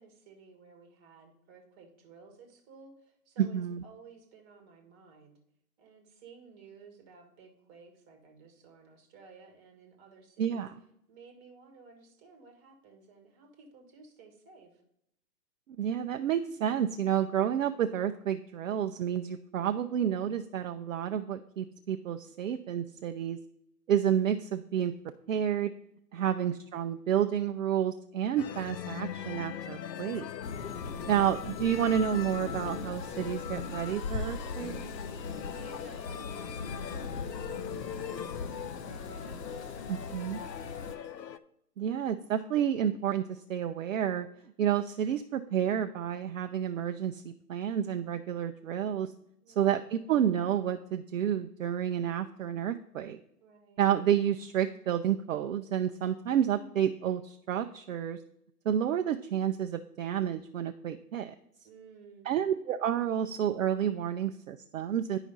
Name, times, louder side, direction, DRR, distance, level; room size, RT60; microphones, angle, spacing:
voice 1, 0.0-5.4 5.8-10.7 11.1-14.8 35.5-38.5 38.8-40.9 49.4-49.8 53.4-53.8 61.6-62.3, right 4 dB, 20° right, 4 dB, 1.2 m, -55 dB
voice 2, 3.4-3.8 10.4-10.7 15.8-23.4 23.9-24.9 25.3-25.7 26.1-30.3 31.1-34.7 40.1-40.4 41.8-44.3 44.6-49.1 49.6-53.2 53.8-58.2 58.7-61.3 62.3-65.2, right 9 dB, 55° right, 8 dB, 0.5 m, -30 dB
sound 1, 28.4-41.4, left 9 dB, 85° left, 0.6 m, -41 dB
sound 2, 30.4-41.0, left 4 dB, 40° left, 0.9 m, -40 dB
10.5 x 5.0 x 4.1 m, 0.77 s
hypercardioid pair, 135°, 49 cm